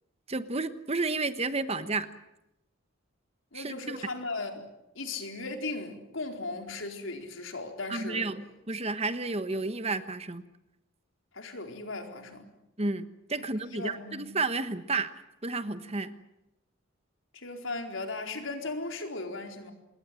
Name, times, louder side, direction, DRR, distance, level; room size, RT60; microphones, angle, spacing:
voice 1, 0.3-2.1 3.5-4.0 7.9-10.4 12.8-15.1 15.4-16.1, right 3 dB, 30° right, 1.2 m, -31 dB
voice 2, 3.5-4.6 4.9-8.3 11.3-12.5 13.7-14.3 17.3-19.7, left 3 dB, 75° left, 4.3 m, -37 dB
27.0 x 21.0 x 7.8 m
head